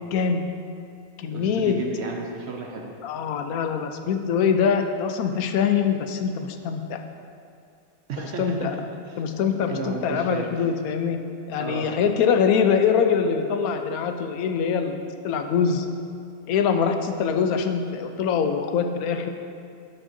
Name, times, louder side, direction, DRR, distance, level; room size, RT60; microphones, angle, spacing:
voice 1, 0.1-0.4 1.2-1.8 3.0-7.0 8.2-8.7 9.2-11.2 11.5-15.9 16.5-19.3, left 6 dB, 80° left, 6 dB, 1.0 m, -23 dB
voice 2, 1.3-2.9 8.1-8.8 9.1-9.3 9.7-10.6 11.6-12.0, right 4 dB, 55° right, 1 dB, 0.9 m, -33 dB
11.5 x 6.3 x 2.7 m, 2.4 s
omnidirectional pair, 1.5 m